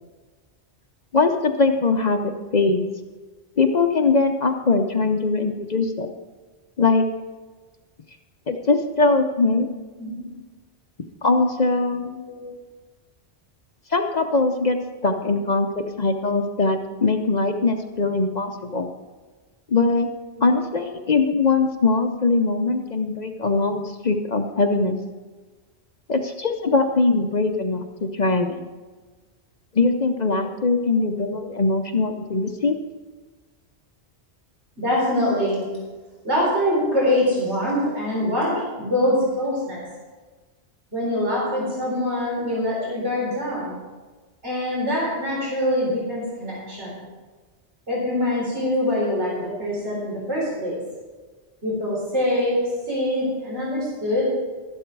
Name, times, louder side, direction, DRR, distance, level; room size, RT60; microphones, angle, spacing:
voice 1, 1.1-2.2 2.5-2.9 3.6-6.1 6.8-7.0 8.5-9.7 11.2-12.1 13.9-14.8 15.0-18.9 19.7-20.1 20.4-25.0 26.1-28.7 29.7-32.8, left 3 dB, 45° left, 5 dB, 0.8 m, -21 dB
voice 2, 11.9-12.5 15.3-15.4 34.8-35.6 36.2-39.8 40.9-43.7 44.4-47.0 47.9-50.8 51.6-52.6 52.9-54.2, left 1 dB, 85° right, -5 dB, 4.7 m, -24 dB
12.5 x 11.5 x 4.6 m, 1.3 s
omnidirectional pair, 1.1 m